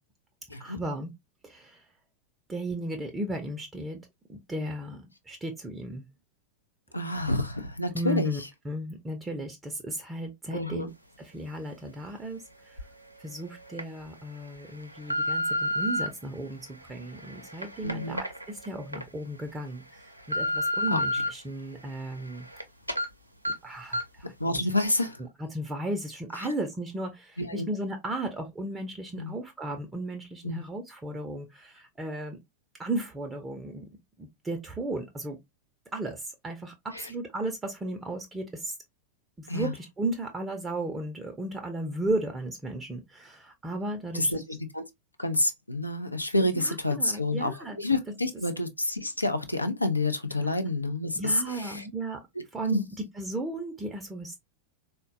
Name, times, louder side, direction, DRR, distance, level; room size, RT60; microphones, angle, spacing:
voice 1, 0.6-1.1 1.4-1.8 2.5-4.0 4.3-6.1 7.9-10.9 11.2-12.8 13.2-22.5 23.6-24.6 25.5-32.4 32.8-33.9 34.2-35.4 35.9-38.8 39.4-44.4 46.4-47.8 51.2-52.2 52.5-52.8 53.1-54.4, right 1 dB, 15° right, 0.5 m, -35 dB
voice 2, 6.9-8.5 10.5-10.9 17.8-18.2 20.9-21.0 24.4-25.2 27.4-27.7 29.2-29.3 30.4-30.6 36.9-37.1 39.5-39.7 44.1-44.8 45.2-51.9 52.7-52.9, left 2 dB, 85° left, 0.5 m, -29 dB
sound 1, 12.8-12.9 13.5-13.8 14.4-16.1 16.7-19.0 19.5-19.6 20.0-21.3 21.7-22.6 22.9-23.1 23.4-23.5 23.9-24.2 24.5-24.6, left 1 dB, 85° right, 0.5 m, -31 dB
3.7 x 2.2 x 2.4 m
figure-of-eight pair, 90°, 0 cm